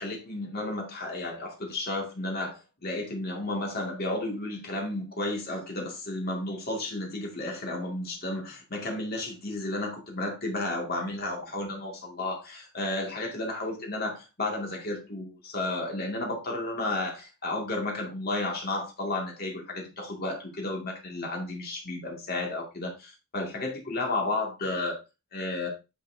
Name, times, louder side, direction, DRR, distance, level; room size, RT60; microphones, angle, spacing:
voice 1, 0.0-25.0 25.3-25.7, left 2 dB, 45° left, 0 dB, 2.3 m, -32 dB
9.5 x 6.0 x 2.8 m, 0.27 s
head